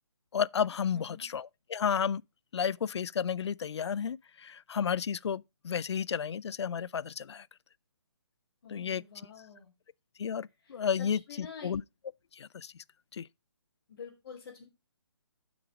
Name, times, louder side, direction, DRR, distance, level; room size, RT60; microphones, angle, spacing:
voice 1, 0.3-2.2 2.5-7.5 8.7-9.0 10.2-11.8 12.3-12.7 13.1-13.3, left 7 dB, 70° left, 0.4 m, -32 dB
voice 2, 0.9-1.3 8.6-9.7 10.6-11.7 13.9-14.6, left 6 dB, 40° left, 3.4 m, -48 dB
8.8 x 6.0 x 5.0 m
hypercardioid pair, 165°, 15 cm